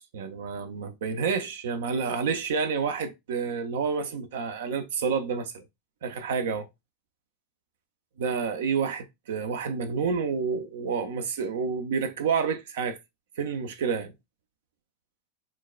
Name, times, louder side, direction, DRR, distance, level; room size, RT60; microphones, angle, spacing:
voice 1, 0.1-5.6 6.0-6.7 8.2-13.0 13.4-14.1, right 5 dB, 80° right, 0.5 m, -29 dB
4.6 x 2.2 x 2.3 m
hypercardioid pair, 110°, 0 cm